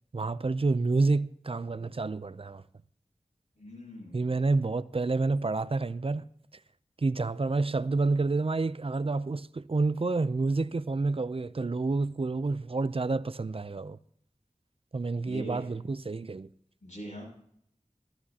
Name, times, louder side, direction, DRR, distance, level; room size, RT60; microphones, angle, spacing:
voice 1, 0.1-2.6 4.1-6.3 7.0-14.0 14.9-16.5, right 3 dB, 50° right, 0.4 m, -29 dB
voice 2, 3.6-4.4 15.2-15.6 16.8-17.2, equal, 85° left, 6.6 m, -42 dB
14.5 x 14.5 x 2.8 m
wide cardioid pair, 50°, 13 cm